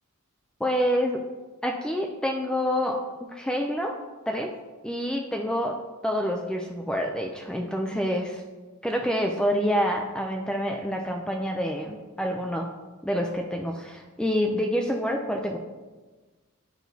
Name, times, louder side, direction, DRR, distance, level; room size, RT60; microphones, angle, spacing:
voice 1, 0.6-1.2 1.6-3.0 3.3-3.9 4.3-4.5 4.8-5.7 6.0-8.4 8.8-12.7 13.0-15.6, equal, 5° left, 2 dB, 0.4 m, -27 dB
9.1 x 6.0 x 2.7 m, 1.3 s
head